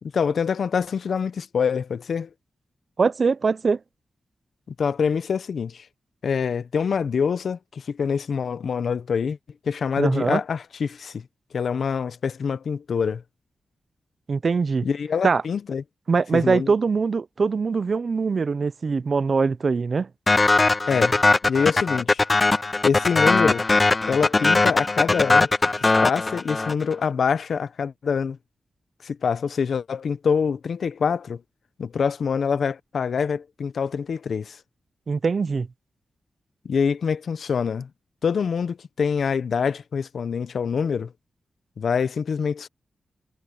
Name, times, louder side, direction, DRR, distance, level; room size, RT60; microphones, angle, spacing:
voice 1, 0.0-2.3 4.8-5.9 6.2-9.4 9.6-11.3 11.5-13.2 14.8-15.8 16.3-16.7 20.9-21.2 21.5-22.2 22.8-23.6 24.1-25.5 25.8-28.4 29.0-31.4 31.8-34.6 36.6-37.9 38.2-41.1 41.8-42.7, left 6 dB, 70° left, 0.8 m, -25 dB
voice 2, 3.0-3.8 10.0-10.4 14.3-14.9 15.2-15.4 16.1-20.1 35.1-35.7, right 4 dB, 50° right, 0.6 m, -22 dB
sound 1, 20.3-26.9, left 3 dB, 30° left, 0.4 m, -20 dB
cardioid pair, 85°, 0 cm